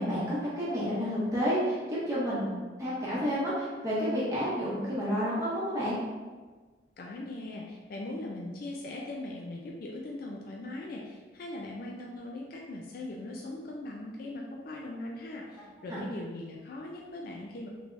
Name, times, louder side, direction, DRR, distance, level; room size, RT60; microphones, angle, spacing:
voice 1, 0.0-2.5 2.8-6.0 15.9-16.0, equal, 15° right, -9 dB, 0.8 m, -30 dB
voice 2, 7.0-17.7, left 2 dB, 50° left, -1 dB, 0.3 m, -40 dB
3.3 x 3.2 x 2.5 m, 1.4 s
head